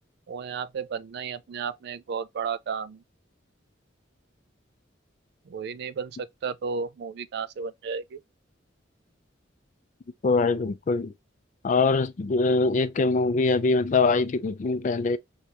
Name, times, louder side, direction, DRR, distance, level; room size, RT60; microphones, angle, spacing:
voice 1, 0.3-3.0 5.5-8.2, right 6 dB, 60° right, 0.3 m, -33 dB
voice 2, 10.2-11.1 11.6-15.2, left 3 dB, 40° left, 0.4 m, -23 dB
3.0 x 2.8 x 3.4 m
head